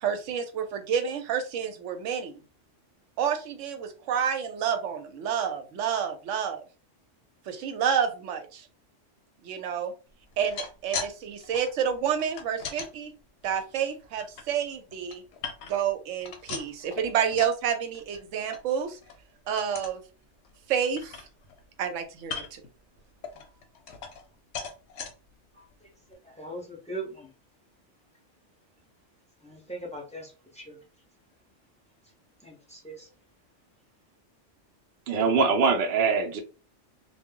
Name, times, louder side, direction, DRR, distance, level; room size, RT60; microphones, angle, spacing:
voice 1, 0.0-2.4 3.2-6.6 7.5-8.6 9.4-9.9 10.4-13.1 13.4-15.2 15.7-19.0 19.5-20.0 20.7-21.2 21.8-22.6, right 8 dB, 85° right, 1.0 m, -29 dB
sound 1, 10.3-11.1 11.4-12.9 13.4-14.4 14.9-15.9 16.2-17.6 17.9-18.2 18.5-18.6 19.0-19.2 19.6-20.0 20.4-20.5 20.8-21.6 22.2-22.7 23.2-24.3 24.5-25.1 25.7-25.8 26.1-26.2, left 6 dB, 70° left, 0.8 m, -39 dB
voice 2, 25.5-27.3 29.4-30.9 32.0-32.1 32.4-33.2, right 2 dB, 5° left, 0.6 m, -41 dB
voice 3, 35.1-36.4, right 4 dB, 60° right, 0.7 m, -23 dB
2.2 x 2.0 x 3.6 m
omnidirectional pair, 1.2 m